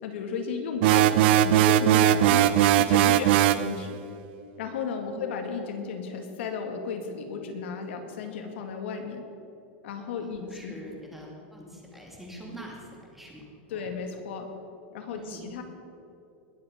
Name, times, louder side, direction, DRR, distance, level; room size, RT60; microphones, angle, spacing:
voice 1, 0.0-4.0 4.6-9.2 9.8-10.7 13.7-14.5 14.9-15.6, left 5 dB, 80° left, 4 dB, 2.1 m, -34 dB
sound 1, 0.8-3.7, right 12 dB, 65° right, 0.6 m, -19 dB
voice 2, 10.2-13.4 13.7-13.9 15.1-15.5, right 1 dB, 5° right, -2 dB, 2.6 m, -45 dB
20.0 x 8.0 x 5.2 m, 2.7 s
supercardioid pair, 150°, 6 cm